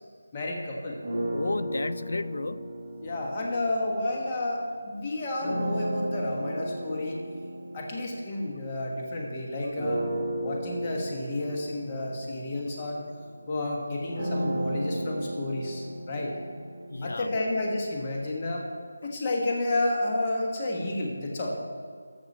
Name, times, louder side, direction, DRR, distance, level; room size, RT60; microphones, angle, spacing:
voice 1, 0.3-1.0 3.0-7.2 7.7-10.0 10.4-13.0 13.5-16.3 17.0-18.7 19.0-21.6, left 2 dB, 20° left, -2 dB, 1.4 m, -31 dB
sound 1, 1.0-4.6 5.4-9.2 9.8-17.7, right 1 dB, 20° right, 2.8 m, -35 dB
voice 2, 1.3-2.7 16.9-17.5, left 2 dB, 70° left, 16 dB, 0.3 m, -32 dB
13.5 x 6.0 x 4.3 m, 2.2 s
figure-of-eight pair, 170°, 0 cm